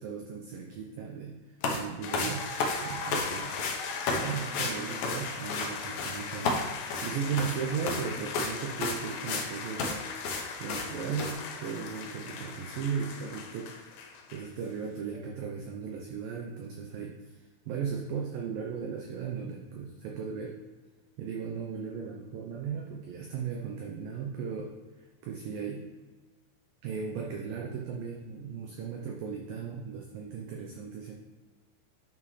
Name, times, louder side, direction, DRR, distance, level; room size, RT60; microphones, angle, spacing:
voice 1, 0.0-3.6 4.1-6.7 7.0-10.1 10.6-14.0 14.3-20.6 21.2-25.9 26.8-31.1, right 6 dB, 90° right, 0 dB, 2.0 m, -36 dB
sound 1, 1.6-1.8 2.1-3.3 3.6-3.8 4.1-4.2 4.5-4.7 5.0-5.7 6.0-6.2 6.4-7.6 7.9-8.0 8.3-8.5 8.8-9.5 9.8-9.9 10.2-10.4 10.7-10.9 11.2-11.3, left 4 dB, 70° left, 2.1 m, -31 dB
sound 2, 2.0-14.7, left 5 dB, 90° left, 3.2 m, -39 dB
9.9 x 5.7 x 3.2 m, 1.3 s
omnidirectional pair, 5.0 m